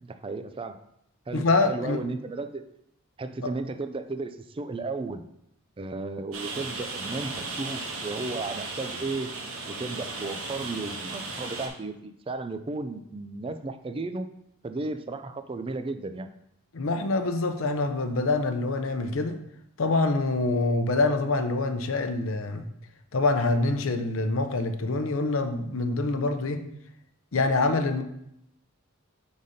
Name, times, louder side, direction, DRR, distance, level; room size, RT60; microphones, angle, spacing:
voice 1, 0.0-0.8 1.3-2.6 3.2-5.3 5.8-9.4 9.7-14.3 14.6-16.3, right 3 dB, 25° right, 9 dB, 0.4 m, -34 dB
voice 2, 1.3-2.0 16.7-19.4 19.8-22.7 23.1-26.6 27.3-28.0, left 3 dB, 70° left, 8 dB, 0.6 m, -25 dB
Rain, 6.3-11.7, right 3 dB, 80° right, 1.3 m, -36 dB
5.4 x 4.0 x 5.0 m, 0.77 s
head